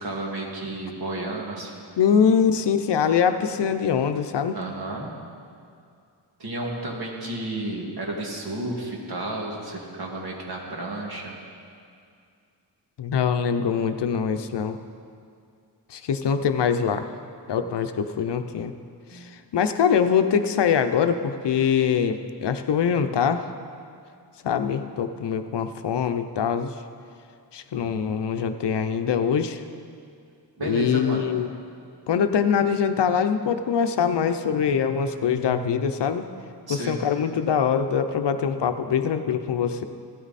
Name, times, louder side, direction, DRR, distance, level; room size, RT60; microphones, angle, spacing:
voice 1, 0.0-1.9 4.5-5.1 6.4-11.3 17.6-17.7 19.1-19.4 30.6-31.4 36.7-37.0, right 2 dB, 55° right, -2 dB, 2.1 m, -32 dB
voice 2, 2.0-4.6 13.0-14.8 15.9-17.1 17.5-18.7 19.1-23.4 24.4-26.7 27.5-29.6 30.7-31.5 32.1-36.2 36.7-39.8, left 7 dB, 65° left, 8 dB, 0.7 m, -23 dB
15.5 x 13.0 x 4.1 m, 2.3 s
wide cardioid pair, 165°, 44 cm